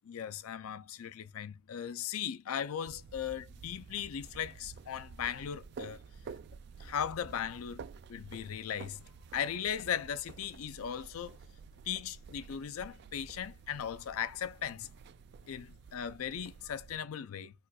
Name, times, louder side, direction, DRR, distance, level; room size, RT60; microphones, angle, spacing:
voice 1, 0.1-6.0 6.8-7.8 8.1-9.0 9.3-11.4 11.9-14.9 15.5-17.5, left 8 dB, 90° left, 0.4 m, -38 dB
sound 1, 2.9-17.0, right 5 dB, 50° right, 0.3 m, -51 dB
4.3 x 2.2 x 2.3 m
head